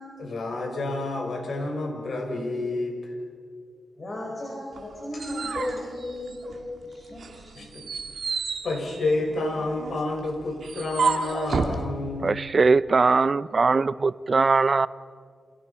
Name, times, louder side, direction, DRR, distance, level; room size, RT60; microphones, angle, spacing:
voice 1, 0.2-3.1 7.5-8.0 8.6-12.4, left 2 dB, 60° left, 6.2 m, -29 dB
voice 2, 4.0-7.7, left 1 dB, 40° left, 5.9 m, -35 dB
sound 1, 4.8-6.7 7.2-11.8, right 5 dB, 65° right, 2.3 m, -31 dB
voice 3, 12.2-14.9, right 4 dB, 40° right, 0.6 m, -21 dB
29.0 x 27.0 x 5.8 m
wide cardioid pair, 105°, 0 cm